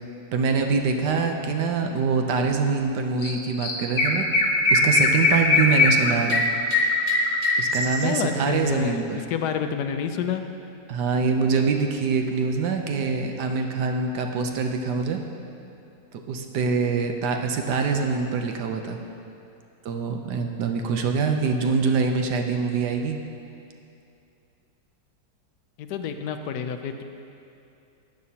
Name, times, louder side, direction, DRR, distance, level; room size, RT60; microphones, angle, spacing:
voice 1, 0.3-4.3 4.7-6.4 7.6-9.3 10.9-15.2 16.3-19.0 19.8-23.2, right 5 dB, 70° right, 4 dB, 1.2 m, -24 dB
Chirp tweet, 3.2-3.3 3.6-8.2, left 2 dB, 40° left, 0.7 m, -21 dB
voice 2, 8.0-10.4 25.8-27.0, left 7 dB, 70° left, 7 dB, 1.1 m, -29 dB
14.5 x 9.3 x 2.8 m, 2.7 s
omnidirectional pair, 1.9 m